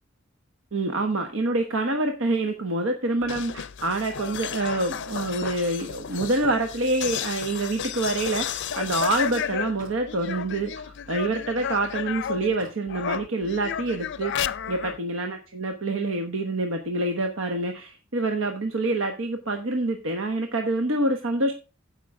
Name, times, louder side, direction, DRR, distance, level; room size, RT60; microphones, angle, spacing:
voice 1, 0.7-21.5, right 2 dB, 75° right, 5 dB, 1.1 m, -26 dB
sound 1, 3.2-12.6 12.9-15.0, left 8 dB, 60° left, 0.5 m, -32 dB
Slam, 5.8-8.9 9.4-10.1 10.5-11.6 12.4-12.8, right 1 dB, 20° right, 5.8 m, -51 dB
15.0 x 5.6 x 3.6 m, 0.31 s
head